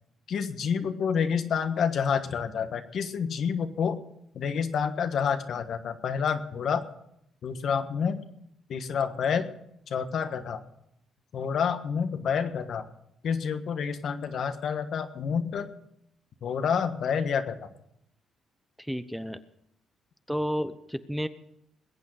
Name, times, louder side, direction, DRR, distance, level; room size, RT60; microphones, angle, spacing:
voice 1, 0.3-4.0 4.3-6.8 7.4-8.2 8.7-9.5 9.9-10.6 11.3-12.8 13.2-15.7 16.4-17.6, left 6 dB, 65° left, 8 dB, 1.4 m, -28 dB
voice 2, 18.9-19.4 20.3-21.3, equal, ahead, 11 dB, 0.8 m, -31 dB
20.5 x 8.4 x 6.5 m, 0.76 s
cardioid pair, 90°, 0 cm